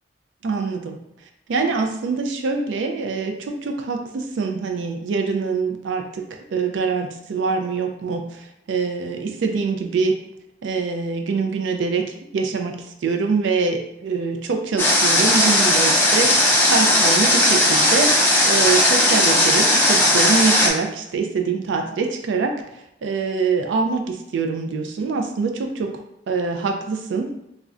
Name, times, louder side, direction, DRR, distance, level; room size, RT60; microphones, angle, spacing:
voice 1, 0.4-1.0 1.5-6.2 6.5-10.2 10.6-12.8 13.0-25.9 26.3-27.4, right 4 dB, 75° right, 4 dB, 0.3 m, -24 dB
Water, 14.8-20.7, left 1 dB, 10° left, 0.4 m, -17 dB
3.6 x 2.1 x 2.4 m, 0.80 s
head